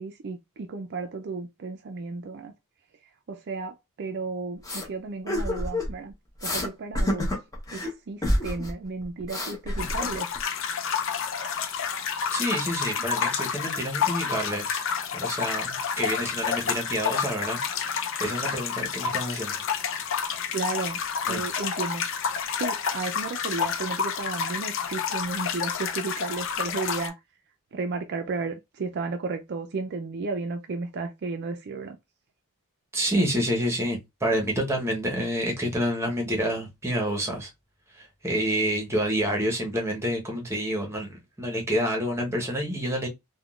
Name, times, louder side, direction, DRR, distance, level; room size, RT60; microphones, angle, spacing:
voice 1, 0.0-2.5 3.3-6.1 6.4-7.3 7.7-10.3 20.5-22.0 22.6-27.2 27.7-32.0, right 4 dB, 50° right, 0.4 m, -33 dB
sound 1, 4.6-4.8 5.3-5.9 6.4-6.7 6.9-7.9 8.2-8.7 9.0-10.4, left 1 dB, 15° left, 0.9 m, -28 dB
sound 2, 9.8-27.1, left 7 dB, 60° left, 0.5 m, -29 dB
voice 2, 12.3-14.8 15.1-17.6 18.2-19.6 21.3-21.4 32.9-37.5 37.9-43.1, equal, 10° right, 0.9 m, -28 dB
3.6 x 2.2 x 2.4 m
head